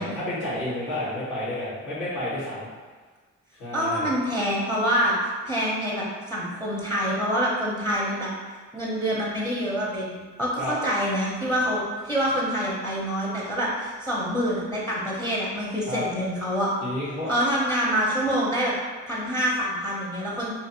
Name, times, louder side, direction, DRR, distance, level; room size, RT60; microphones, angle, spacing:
voice 1, 0.0-2.7 3.6-4.1 10.6-10.7 15.9-16.0 16.8-17.3, left 1 dB, 85° left, -9 dB, 1.3 m, -30 dB
voice 2, 3.7-5.1 5.5-6.0 6.3-8.3 8.7-16.7 17.3-18.7 19.1-20.5, equal, 10° left, -5 dB, 0.6 m, -26 dB
2.8 x 2.5 x 2.7 m, 1.4 s
cardioid pair, 90°, 30 cm